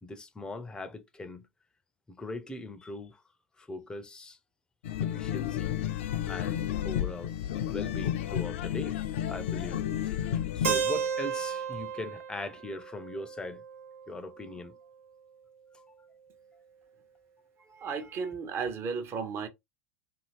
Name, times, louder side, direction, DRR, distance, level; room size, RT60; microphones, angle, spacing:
voice 1, 0.0-1.5 2.1-3.2 3.6-4.4 5.0-5.7 6.3-7.3 7.7-9.0 9.3-13.6 14.1-14.8 15.7-15.8, left 2 dB, 10° left, 0.5 m, -40 dB
sound 1, 4.8-10.8, left 10 dB, 60° left, 0.4 m, -32 dB
Keyboard (musical), 10.6-14.5, right 7 dB, 70° right, 1.0 m, -34 dB
voice 2, 17.6-19.5, right 5 dB, 35° right, 0.8 m, -34 dB
2.7 x 2.7 x 2.9 m
figure-of-eight pair, 90°, 8 cm